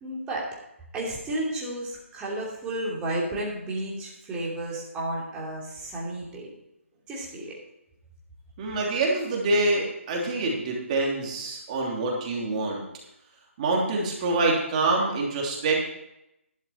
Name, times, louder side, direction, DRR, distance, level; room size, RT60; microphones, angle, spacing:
voice 1, 0.0-0.5 0.9-6.5 7.1-7.5, right 1 dB, 10° right, -4 dB, 3.0 m, -32 dB
voice 2, 8.6-12.8 13.6-15.8, right 2 dB, 30° right, -2 dB, 3.0 m, -26 dB
11.5 x 10.5 x 4.4 m, 0.85 s
figure-of-eight pair, 150°, 7 cm